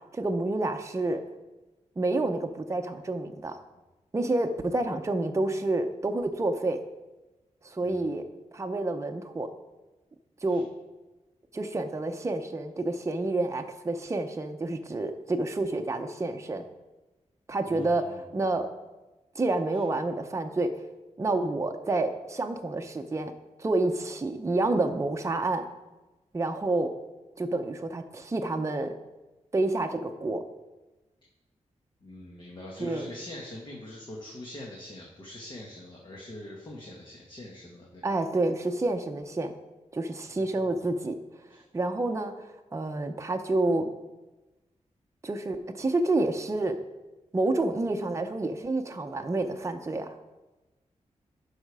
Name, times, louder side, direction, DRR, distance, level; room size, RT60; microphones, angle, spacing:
voice 1, 0.1-1.2 2.0-3.6 4.1-6.8 7.6-8.2 8.5-9.5 10.4-10.7 11.5-16.6 17.5-18.1 18.3-18.7 19.3-20.7 21.2-23.3 23.6-25.7 26.3-26.9 27.4-28.9 29.5-30.4 32.8-33.1 38.0-39.5 39.9-41.2 41.7-42.3 42.7-43.9 45.2-46.8 47.3-50.1, right 2 dB, 25° right, 4 dB, 0.7 m, -28 dB
voice 2, 17.6-18.4 19.7-19.8 32.0-38.1 41.5-41.6, left 1 dB, 40° left, -2 dB, 1.5 m, -43 dB
12.0 x 5.0 x 4.8 m, 1.1 s
wide cardioid pair, 125°, 12 cm